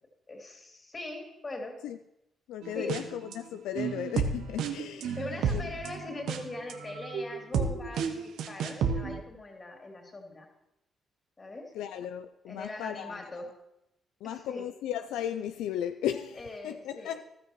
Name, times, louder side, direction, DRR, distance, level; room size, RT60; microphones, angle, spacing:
voice 1, 0.3-1.8 2.7-2.9 5.1-10.5 11.4-11.7 12.5-13.5 14.2-14.7 16.4-17.1, left 2 dB, 35° left, 3.0 m, -41 dB
voice 2, 2.5-5.6 11.7-13.1 14.2-17.2, left 10 dB, 85° left, 0.4 m, -35 dB
sound 1, 2.6-3.3 3.8-9.2, right 6 dB, 80° right, 0.9 m, -31 dB
14.5 x 12.5 x 3.1 m
supercardioid pair, 65°, 0 cm